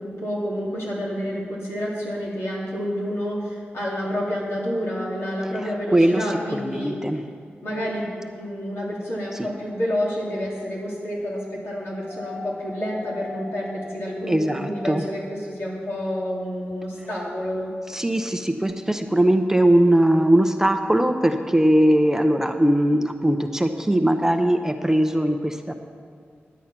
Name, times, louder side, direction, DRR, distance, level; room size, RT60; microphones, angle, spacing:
voice 1, 0.0-7.0 7.6-17.7, equal, 85° left, -5 dB, 2.8 m, -29 dB
voice 2, 5.6-7.2 9.3-9.5 14.3-15.0 17.9-25.7, right 1 dB, 10° right, 6 dB, 0.7 m, -20 dB
sound 1, 12.0-15.3 16.7-16.8, left 3 dB, 35° left, 0.7 m, -39 dB
11.0 x 8.3 x 5.9 m, 2.2 s
cardioid pair, 60°, 4 cm